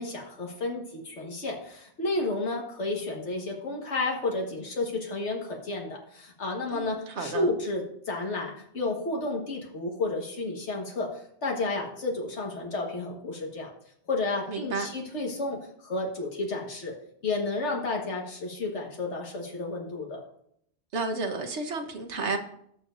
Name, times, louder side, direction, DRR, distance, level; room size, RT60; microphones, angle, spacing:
voice 1, 0.0-13.7 14.1-17.0 17.2-20.2, left 2 dB, 90° left, 0 dB, 1.8 m, -31 dB
voice 2, 6.7-7.5 14.5-14.9 20.9-22.4, right 3 dB, 80° right, 5 dB, 1.4 m, -32 dB
17.0 x 6.8 x 2.6 m, 0.69 s
omnidirectional pair, 1.2 m